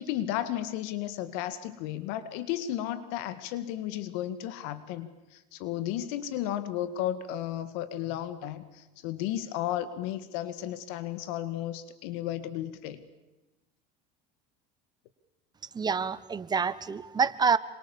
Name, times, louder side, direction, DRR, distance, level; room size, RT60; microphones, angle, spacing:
voice 1, 0.0-13.0, left 12 dB, 75° left, 13 dB, 1.9 m, -34 dB
voice 2, 15.7-17.6, right 5 dB, 20° right, 15 dB, 1.1 m, -27 dB
27.0 x 26.0 x 7.2 m, 1.0 s
supercardioid pair, 120°, 20 cm